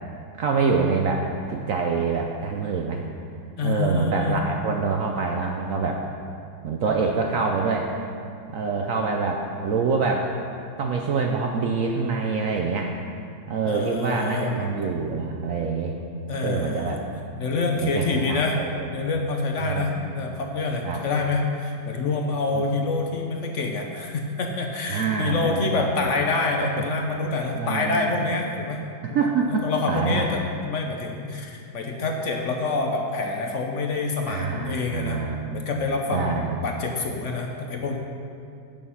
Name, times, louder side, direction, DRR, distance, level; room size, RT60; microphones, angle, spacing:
voice 1, 0.4-3.0 3.6-6.0 6.6-7.9 8.5-10.3 10.8-12.9 13.5-15.9 16.4-17.0 17.8-18.9 19.6-20.2 20.8-21.0 22.5-22.6 24.9-25.9 26.6-26.8 27.6-28.3 29.0-30.3 34.3-35.6 36.1-36.7, right 4 dB, 80° right, 1 dB, 0.7 m, -26 dB
voice 2, 3.6-4.4 13.7-14.9 16.3-17.0 17.4-18.6 18.9-28.8 29.1-35.3 35.5-36.3 36.6-38.0, left 3 dB, 60° left, 2 dB, 0.8 m, -27 dB
8.9 x 6.4 x 5.6 m, 2.4 s
omnidirectional pair, 2.1 m